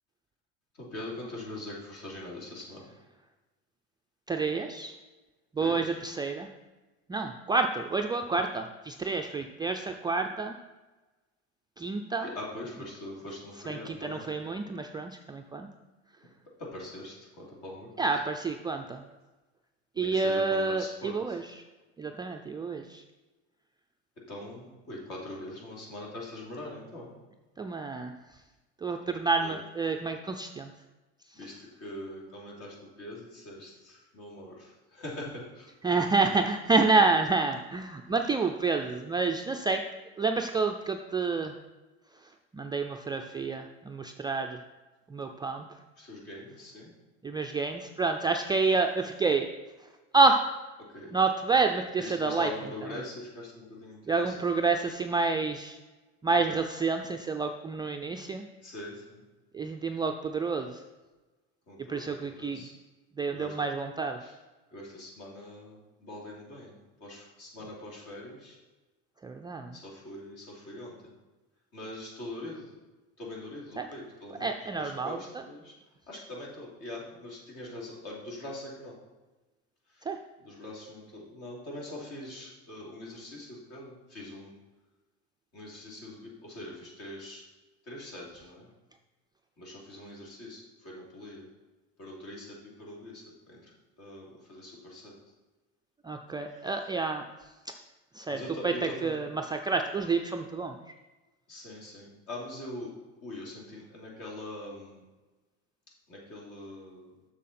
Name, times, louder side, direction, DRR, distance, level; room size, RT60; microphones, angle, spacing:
voice 1, 0.8-2.8 5.6-6.0 12.2-14.3 16.6-18.1 20.0-21.4 24.3-27.1 29.4-29.5 31.4-35.7 46.0-46.9 50.8-51.1 52.0-54.5 58.6-59.2 61.7-62.7 63.3-63.5 64.2-64.3 64.7-66.7 67.0-68.6 69.7-71.0 71.7-72.7 73.2-75.7 76.1-78.9 80.4-84.5 85.5-87.4 87.9-88.7 89.6-91.4 92.0-93.7 94.0-95.1 96.5-96.7 98.3-99.2 101.5-102.9 103.2-105.0 106.1-107.1, left 1 dB, 50° left, -3 dB, 2.9 m, -43 dB
voice 2, 4.3-4.9 5.6-6.5 7.1-10.5 11.8-12.3 13.7-15.7 18.0-19.0 20.0-21.6 22.0-23.0 27.6-28.1 28.8-30.7 35.8-39.8 40.2-41.5 42.5-44.6 45.1-45.6 47.2-49.5 50.1-50.4 51.1-52.5 54.1-55.8 56.2-58.5 59.5-60.7 61.9-62.6 63.2-64.2 69.2-69.8 73.8-73.9 74.4-75.2 80.1-80.2 96.0-97.2 98.1-100.8, right 4 dB, 15° right, 3 dB, 0.3 m, -28 dB
7.3 x 6.4 x 4.3 m, 1.2 s
supercardioid pair, 110°, 31 cm